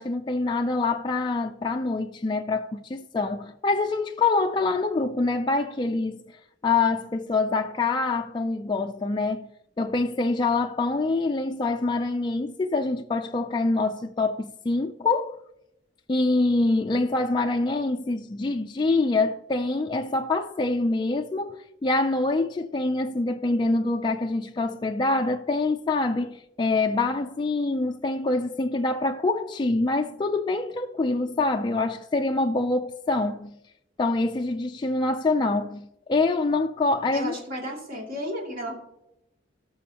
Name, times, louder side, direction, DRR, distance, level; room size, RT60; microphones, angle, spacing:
voice 1, 0.0-6.2 6.6-9.5 9.8-15.4 16.1-33.6 34.0-37.3, left 3 dB, 25° left, 0.3 m, -25 dB
voice 2, 37.1-38.8, equal, 50° right, 2.5 m, -33 dB
18.0 x 6.3 x 2.9 m
head